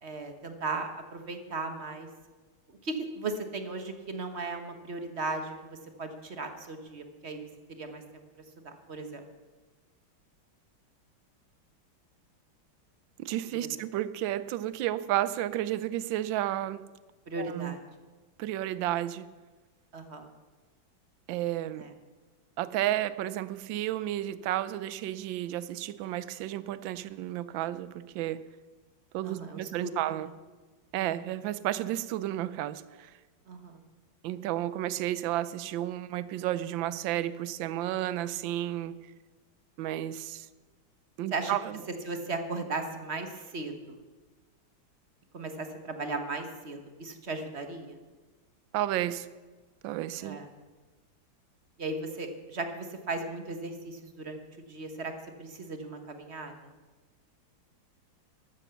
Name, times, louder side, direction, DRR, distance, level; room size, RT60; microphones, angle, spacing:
voice 1, 0.0-2.1 2.7-7.4 7.7-8.2 8.6-9.2 13.5-13.7 17.3-17.8 19.9-20.3 21.7-21.9 29.2-30.3 31.0-31.1 33.5-33.8 41.3-41.6 42.0-44.0 45.3-48.0 50.2-50.5 51.8-55.1 55.4-56.5, right 3 dB, 35° right, 1.3 m, -37 dB
voice 2, 13.2-16.8 17.4-17.8 18.4-19.3 21.3-21.8 22.6-28.4 29.1-30.3 30.9-33.1 34.2-38.9 39.8-40.5 41.2-41.8 48.7-49.3 49.8-50.4, right 13 dB, 75° right, 1.4 m, -32 dB
13.5 x 12.5 x 6.9 m
omnidirectional pair, 2.2 m